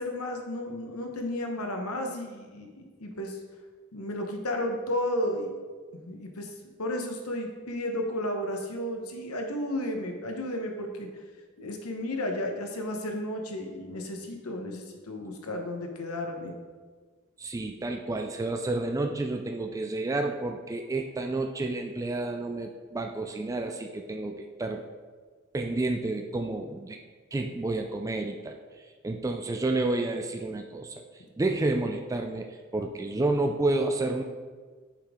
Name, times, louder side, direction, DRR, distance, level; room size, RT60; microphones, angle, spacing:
voice 1, 0.0-3.4 3.9-5.5 5.9-6.5 6.8-11.1 11.6-16.6, left 1 dB, 85° left, 3 dB, 1.0 m, -33 dB
voice 2, 17.4-24.8 25.5-27.0 27.3-28.6 29.0-31.0 31.4-34.2, right 2 dB, 15° right, 4 dB, 0.3 m, -30 dB
7.2 x 5.2 x 3.6 m, 1.5 s
head